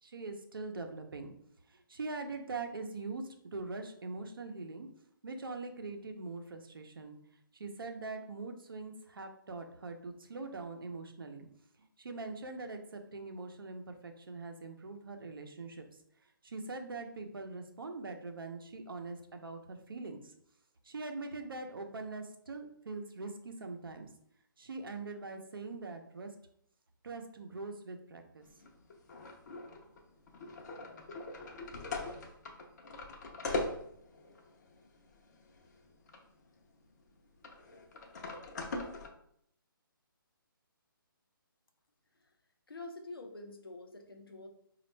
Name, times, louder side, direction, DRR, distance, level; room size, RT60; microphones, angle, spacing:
voice 1, 0.0-1.3 1.7-4.9 5.2-7.2 7.5-11.5 11.8-20.3 20.8-24.1 24.6-26.3 27.0-28.4, right 3 dB, 75° right, 5 dB, 0.7 m, -43 dB
sound 1, 28.4-36.3 36.6-36.7 37.4-39.1, left 2 dB, 50° left, 0.7 m, -41 dB
voice 2, 42.7-44.5, left 2 dB, 85° left, 4 dB, 0.7 m, -47 dB
4.2 x 2.4 x 3.2 m, 0.70 s
figure-of-eight pair, 145°, 12 cm